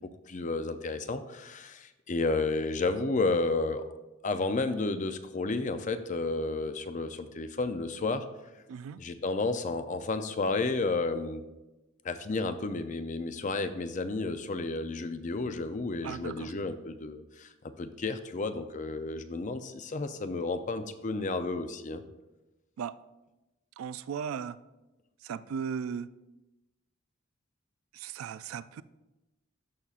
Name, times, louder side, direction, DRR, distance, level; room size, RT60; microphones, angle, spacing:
voice 1, 0.0-3.9 4.2-8.3 9.0-11.4 12.0-17.5 17.8-22.0, left 3 dB, 35° left, 10 dB, 0.5 m, -32 dB
voice 2, 8.7-9.0 16.0-16.5 22.8-23.0 23.8-24.6 25.2-26.1 27.9-28.8, right 7 dB, 90° right, 16 dB, 0.3 m, -37 dB
13.0 x 5.5 x 2.5 m, 1.0 s
head